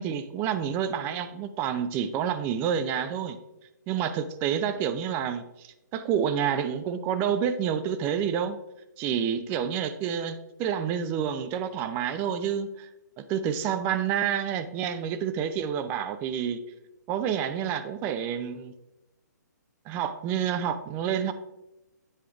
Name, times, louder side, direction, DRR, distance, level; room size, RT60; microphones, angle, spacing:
voice 1, 0.0-3.4 3.9-8.6 9.0-12.9 13.2-16.6 17.1-18.7 19.9-21.3, right 8 dB, 20° right, 12 dB, 0.4 m, -28 dB
7.8 x 4.8 x 3.4 m, 0.92 s
hypercardioid pair, 140°, 10 cm